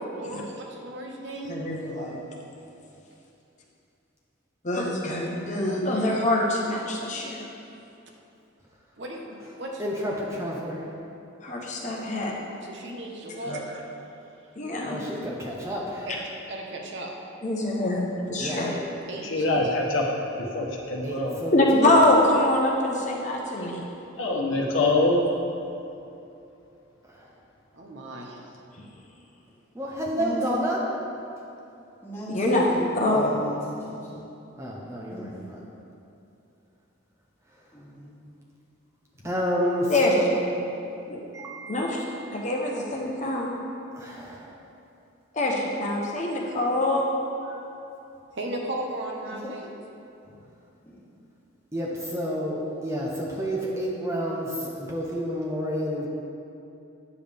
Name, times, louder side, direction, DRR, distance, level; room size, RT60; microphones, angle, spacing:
voice 1, 0.1-1.6 9.0-9.2 9.6-9.8 12.6-13.8 16.0-16.2 16.5-17.1 17.8-17.9 19.1-19.4 27.7-28.5 48.3-49.7, right 1 dB, 60° right, 0 dB, 1.0 m, -36 dB
voice 2, 1.5-2.2 4.6-7.4 11.4-12.4 13.5-13.6 14.6-15.0 17.4-18.7 21.5-23.8 32.3-32.7 32.9-33.3 39.9-40.1 41.1-41.2 41.7-42.0 42.3-43.5 45.3-47.0, left 1 dB, 35° left, -2 dB, 0.8 m, -24 dB
voice 3, 9.8-10.9 14.8-16.1 18.4-18.6 21.0-22.0 27.1-27.3 29.7-30.8 34.6-35.5 39.2-40.4 41.3-42.1 43.9-44.5 47.4-47.6 51.7-56.1, equal, 15° right, -4 dB, 0.6 m, -30 dB
voice 4, 19.2-20.1 20.4-21.4 23.6-23.7 24.2-25.2, left 2 dB, 75° left, -1 dB, 1.1 m, -24 dB
voice 5, 30.2-30.6 32.0-34.3 35.1-35.3 37.7-38.1 49.2-49.5 50.8-51.0 54.8-55.0, equal, 10° left, -8 dB, 1.7 m, -35 dB
9.4 x 7.0 x 3.4 m, 2.7 s
head